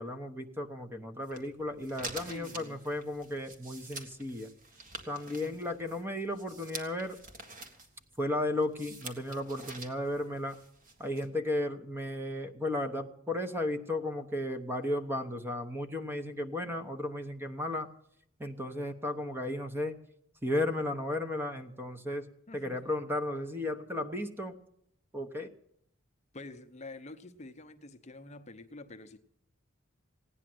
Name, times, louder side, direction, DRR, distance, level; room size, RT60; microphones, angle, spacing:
voice 1, 0.0-4.5 5.1-7.2 8.2-10.6 11.0-17.9 18.4-20.0 20.4-22.3 22.5-24.6 25.1-25.5, left 1 dB, 10° right, 7 dB, 0.9 m, -34 dB
sound 1, 1.2-11.3, right 3 dB, 40° right, 1.9 m, -47 dB
voice 2, 2.2-2.8 5.2-5.5 22.5-22.9 26.3-29.2, left 2 dB, 35° left, 8 dB, 0.7 m, -47 dB
16.5 x 9.9 x 7.7 m, 0.74 s
head